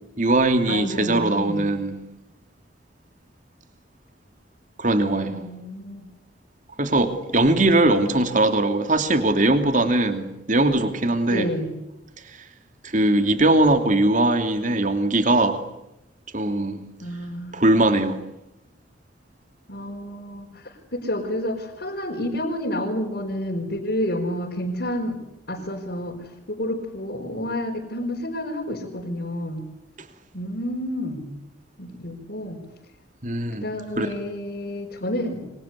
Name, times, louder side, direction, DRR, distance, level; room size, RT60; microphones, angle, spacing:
voice 1, 0.2-2.0 4.8-5.4 6.8-11.5 12.8-15.6 16.3-16.8 17.5-18.2 33.2-33.7 34.0-34.1, right 2 dB, 40° right, 2.9 m, -20 dB
voice 2, 0.7-1.7 5.0-6.1 11.3-11.7 17.0-17.6 19.7-25.2 25.5-26.2 26.5-29.6 30.3-31.3 31.8-32.6 33.6-35.5, left 1 dB, 55° left, 5.2 m, -29 dB
28.5 x 25.0 x 8.4 m
head